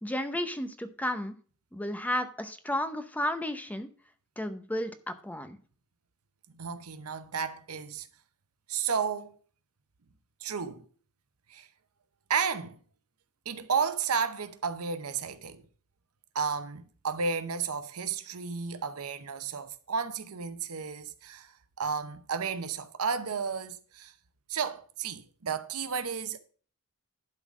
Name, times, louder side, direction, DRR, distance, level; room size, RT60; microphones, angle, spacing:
voice 1, 0.0-1.3 1.7-3.9 4.4-5.6, left 1 dB, 5° left, 0.7 m, -33 dB
voice 2, 6.5-8.1 8.7-9.4 10.4-10.8 11.5-11.7 12.3-12.8 13.5-15.7 16.3-21.5 21.8-24.1 24.5-26.4, right 6 dB, 75° right, 0.8 m, -32 dB
11.5 x 4.0 x 6.1 m
head